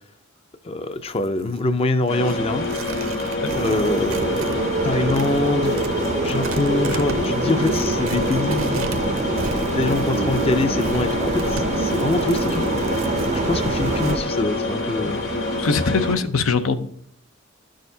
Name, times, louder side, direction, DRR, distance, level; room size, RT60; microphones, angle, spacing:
voice 1, 0.6-2.7 3.5-5.7 6.2-8.9 9.7-12.7 13.3-15.2, left 2 dB, 30° left, 10 dB, 0.4 m, -24 dB
Tearing, 0.9-4.6 4.9-14.2, right 3 dB, 70° right, 0.7 m, -36 dB
sound 1, 2.1-16.1, left 2 dB, 65° left, 3.5 m, -27 dB
sound 2, 3.5-14.2, right 3 dB, 35° right, 0.5 m, -26 dB
voice 2, 15.6-16.9, left 4 dB, 85° left, 10 dB, 0.6 m, -22 dB
12.0 x 6.4 x 2.7 m, 0.67 s
head